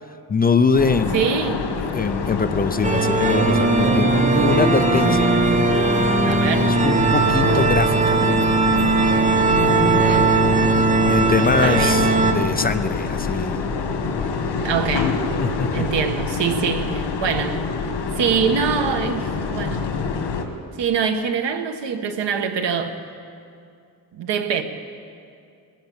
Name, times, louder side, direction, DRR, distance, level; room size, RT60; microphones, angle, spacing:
voice 1, 0.3-1.2 1.9-5.9 6.6-8.4 11.1-13.7 15.4-15.9, left 4 dB, 20° left, 0.5 m, -23 dB
sound 1, 0.8-20.5, left 4 dB, 80° left, 2.0 m, -26 dB
voice 2, 1.1-1.7 6.2-6.8 9.5-10.4 11.6-12.2 14.6-15.2 15.7-17.7 18.2-19.9 20.8-23.0 24.1-24.6, right 7 dB, 85° right, 1.7 m, -24 dB
sound 2, 2.8-12.3, right 3 dB, 20° right, 1.1 m, -18 dB
20.5 x 17.5 x 7.2 m
wide cardioid pair, 175°, 41 cm